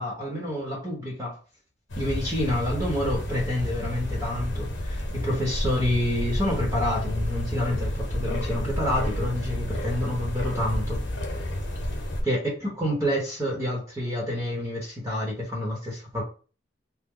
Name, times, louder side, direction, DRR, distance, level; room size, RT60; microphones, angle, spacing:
voice 1, 0.0-1.4 2.0-11.0 12.2-16.2, left 1 dB, 15° right, -3 dB, 0.9 m, -28 dB
sound 1, 1.9-12.2, left 1 dB, 80° left, 0.9 m, -30 dB
3.0 x 2.0 x 3.6 m, 0.37 s
head